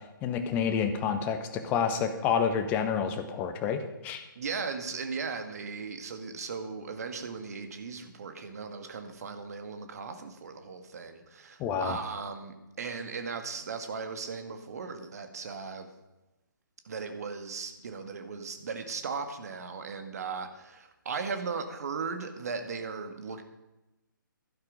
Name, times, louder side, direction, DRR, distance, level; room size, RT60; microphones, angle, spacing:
voice 1, 0.2-4.2 11.6-12.0, left 7 dB, 15° left, 8 dB, 0.9 m, -29 dB
voice 2, 4.3-15.9 16.8-23.4, right 5 dB, 45° right, 7 dB, 1.5 m, -37 dB
12.0 x 10.5 x 5.2 m, 0.99 s
figure-of-eight pair, 135°, 11 cm